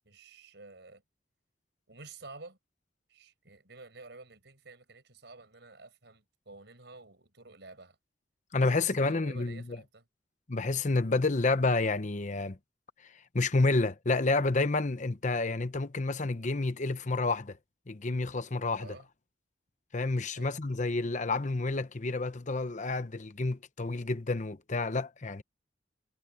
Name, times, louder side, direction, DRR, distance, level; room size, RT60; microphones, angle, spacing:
voice 1, 0.1-1.0 1.9-2.6 3.1-8.0 8.6-10.0 18.8-19.1 20.4-20.5, right 3 dB, 65° right, 5.6 m, -51 dB
voice 2, 8.5-9.8 10.5-12.6 13.0-17.6 17.9-19.0 19.9-25.4, left 3 dB, 40° left, 0.9 m, -29 dB
head